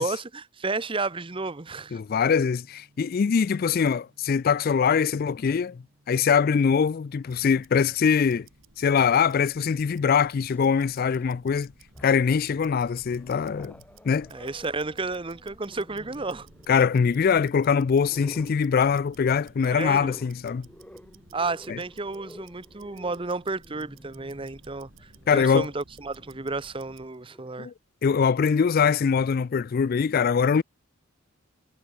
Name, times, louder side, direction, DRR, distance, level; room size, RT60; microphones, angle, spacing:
voice 1, 0.0-2.0 14.3-16.5 19.6-20.2 21.3-27.7, right 3 dB, 25° right, 0.8 m, -32 dB
voice 2, 1.9-8.5 8.8-11.7 12.0-13.7 14.0-14.3 16.7-20.7 21.7-21.8 25.3-25.7 27.6-27.7 28.0-30.6, left 6 dB, 45° left, 0.3 m, -23 dB
Tick-tock, 7.2-27.2, right 3 dB, 70° right, 4.7 m, -55 dB
Growling, 10.3-11.4 11.8-12.5 12.9-27.5, equal, 5° left, 2.5 m, -52 dB
Gong, 18.7-19.7, equal, 45° right, 6.7 m, -67 dB
head